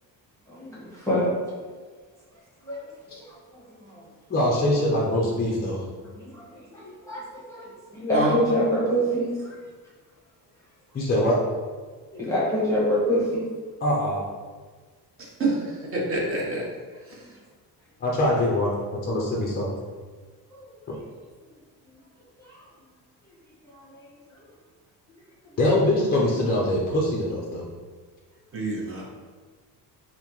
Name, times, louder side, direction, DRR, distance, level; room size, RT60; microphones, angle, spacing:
voice 1, 0.5-1.3 2.6-4.0 6.1-9.6 12.1-13.5 17.2-17.4 20.5-21.1 21.8-22.0 22.4-22.7 23.2-23.3 23.6-24.5 25.4-25.6, equal, 5° left, -7 dB, 0.9 m, -28 dB
voice 2, 4.3-5.8 10.9-11.4 13.8-14.2 18.0-18.7 19.1-19.7 20.9-21.0 25.6-27.7, left 1 dB, 25° left, -3 dB, 0.5 m, -23 dB
voice 3, 15.2-16.6 28.5-29.0, right 2 dB, 30° right, -3 dB, 0.9 m, -27 dB
5.4 x 2.1 x 3.0 m, 1.4 s
cardioid pair, 150°, 41 cm